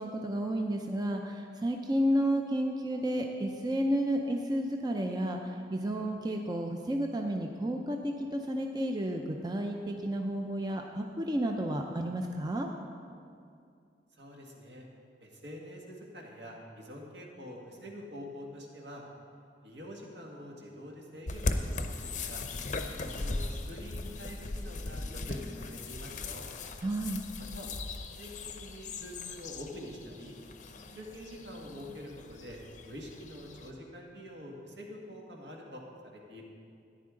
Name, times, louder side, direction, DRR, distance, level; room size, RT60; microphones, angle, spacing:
voice 1, 0.0-12.7 26.8-27.2, right 1 dB, 25° right, 2 dB, 0.5 m, -31 dB
voice 2, 14.2-14.9 15.2-19.0 19.6-22.4 22.9-26.5 27.5-27.7 28.2-28.3 28.6-30.4 31.0-36.4, equal, 75° right, -1 dB, 1.8 m, -46 dB
sound 1, 21.3-33.7, left 2 dB, 45° left, 0.6 m, -38 dB
13.5 x 10.5 x 3.8 m, 2.4 s
head